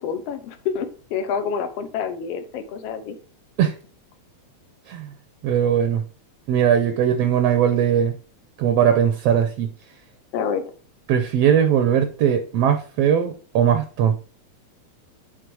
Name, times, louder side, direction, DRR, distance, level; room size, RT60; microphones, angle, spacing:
voice 1, 0.0-3.2 10.3-10.6, left 6 dB, 65° left, 8 dB, 1.9 m, -27 dB
voice 2, 5.4-6.0 6.5-8.1 8.6-9.7 11.1-14.1, right 9 dB, 70° right, 7 dB, 1.7 m, -19 dB
9.5 x 4.1 x 4.8 m, 0.38 s
omnidirectional pair, 3.3 m